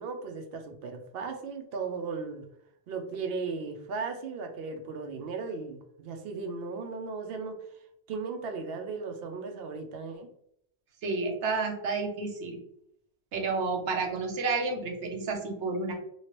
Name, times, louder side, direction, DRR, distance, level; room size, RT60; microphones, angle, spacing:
voice 1, 0.0-2.5 2.9-7.7 8.1-10.3, right 4 dB, 65° right, 5 dB, 0.7 m, -36 dB
voice 2, 11.0-12.6 13.3-15.9, right 4 dB, 85° right, 2 dB, 1.0 m, -30 dB
3.0 x 2.8 x 2.9 m, 0.74 s
omnidirectional pair, 1.1 m